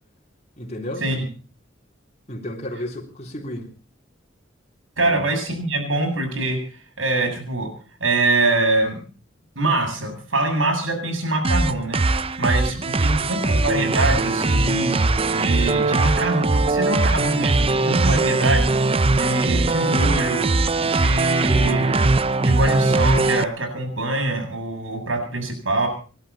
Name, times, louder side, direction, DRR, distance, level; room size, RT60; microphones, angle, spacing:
voice 1, 0.6-1.1 2.3-3.7 5.0-5.2 12.6-13.6, left 1 dB, 35° left, -1 dB, 3.3 m, -34 dB
voice 2, 5.0-6.6 7.0-7.7 8.0-9.0 9.6-12.0 12.4-15.0 15.3-18.7 19.1-20.5 20.8-22.1 22.4-25.9, right 2 dB, 85° right, 3 dB, 7.8 m, -24 dB
sound 1, 11.4-23.4, right 3 dB, 30° right, 0.7 m, -20 dB
29.0 x 11.5 x 4.1 m, 0.39 s
head